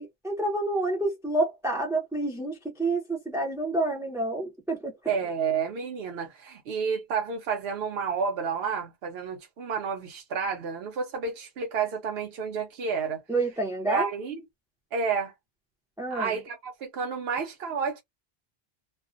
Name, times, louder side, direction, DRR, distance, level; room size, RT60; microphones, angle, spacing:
voice 1, 0.0-5.0 13.3-14.1 16.0-16.3, right 2 dB, 5° right, 0.4 m, -28 dB
voice 2, 5.1-13.2 13.9-14.4 14.9-15.3 16.1-18.0, right 6 dB, 75° right, 0.9 m, -30 dB
2.4 x 2.0 x 2.5 m
omnidirectional pair, 1.0 m